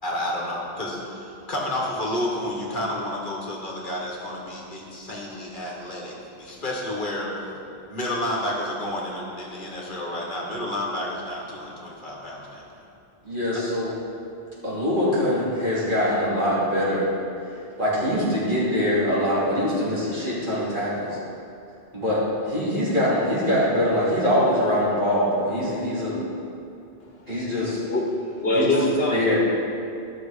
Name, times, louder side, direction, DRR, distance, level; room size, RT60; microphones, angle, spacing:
voice 1, 0.0-7.3 7.9-12.6, left 1 dB, 50° left, -3 dB, 1.8 m, -30 dB
voice 2, 13.2-13.9 14.6-17.1 17.8-21.2 21.9-26.2 27.3-27.8 28.5-28.8 29.1-29.4, equal, 55° right, -9 dB, 3.3 m, -23 dB
voice 3, 27.9-29.4, left 1 dB, 70° left, 0 dB, 1.5 m, -23 dB
13.5 x 6.3 x 5.0 m, 2.6 s
omnidirectional pair, 1.0 m